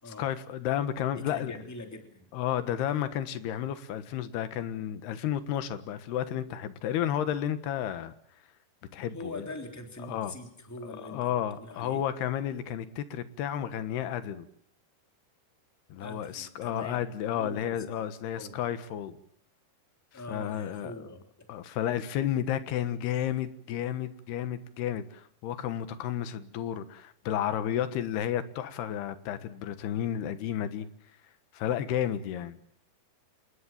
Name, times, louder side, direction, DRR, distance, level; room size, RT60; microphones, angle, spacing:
voice 1, 0.1-1.5 2.3-8.1 8.9-9.5 10.0-10.3 10.8-14.5 15.9-19.2 20.3-20.9 21.5-30.9 31.5-32.6, left 10 dB, 75° left, 12 dB, 3.4 m, -32 dB
voice 2, 1.1-2.3 9.1-12.0 16.0-17.0 17.3-17.9 18.3-18.6 20.1-21.5, left 2 dB, 5° left, 5 dB, 2.7 m, -43 dB
28.5 x 20.0 x 7.4 m, 0.66 s
omnidirectional pair, 4.8 m